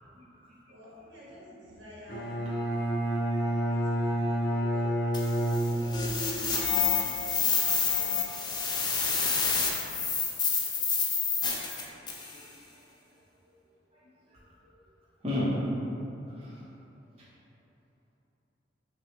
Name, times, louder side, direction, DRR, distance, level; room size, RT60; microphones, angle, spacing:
voice 1, 0.7-2.4 3.4-4.8 5.2-6.4 7.1-7.2 7.5-8.2 9.0-9.1 10.5-10.7 11.1-11.2 13.5-13.6, equal, 75° right, -7 dB, 1.1 m, -52 dB
Bowed string instrument, 2.1-6.3, right 1 dB, 60° left, 0.7 m, -29 dB
sound 1, 5.1-12.3, left 5 dB, 25° left, 0.4 m, -28 dB
voice 2, 6.9-7.5 8.4-8.5 9.1-9.4 11.8-11.9 12.3-12.4 14.3-14.4 15.2-15.5 16.4-16.6, left 1 dB, 35° right, -9 dB, 0.8 m, -35 dB
5.7 x 2.3 x 3.1 m, 2.8 s
head